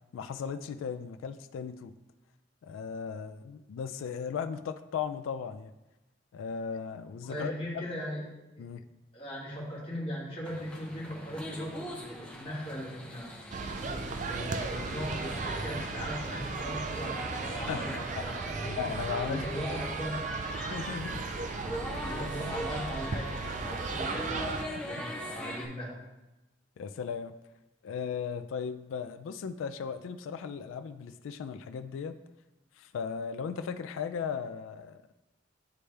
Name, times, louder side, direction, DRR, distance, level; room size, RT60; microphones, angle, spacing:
voice 1, 0.1-1.9 2.6-5.7 6.3-7.5 8.6-8.8 17.7-18.0 18.7-19.5 20.7-21.2 26.8-27.3 27.8-32.2 32.8-35.0, left 6 dB, 85° left, 9 dB, 0.3 m, -36 dB
voice 2, 7.2-8.2 8.5-8.6 9.1-13.3 13.9-18.7 19.2-20.3 22.0-26.0, equal, 30° left, -6 dB, 1.8 m, -39 dB
sound 1, 10.4-25.7, equal, 5° left, 0.6 m, -41 dB
sound 2, 13.5-24.6, right 4 dB, 40° right, 0.3 m, -36 dB
9.5 x 3.3 x 3.2 m, 1.0 s
head